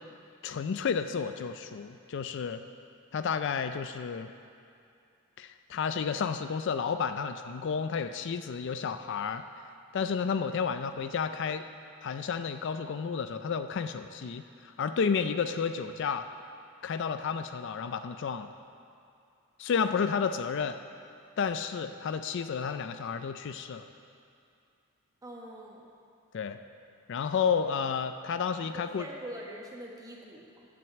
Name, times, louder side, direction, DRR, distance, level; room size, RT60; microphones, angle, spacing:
voice 1, 0.4-2.6 3.1-4.3 5.4-9.4 9.9-11.6 12.0-16.3 16.8-18.5 19.6-20.8 21.4-23.9 26.3-26.6 27.1-29.1, left 6 dB, 55° left, 9 dB, 0.3 m, -31 dB
voice 2, 25.2-25.9 28.6-30.7, right 1 dB, 15° right, -1 dB, 1.3 m, -44 dB
10.5 x 6.0 x 8.0 m, 2.5 s
head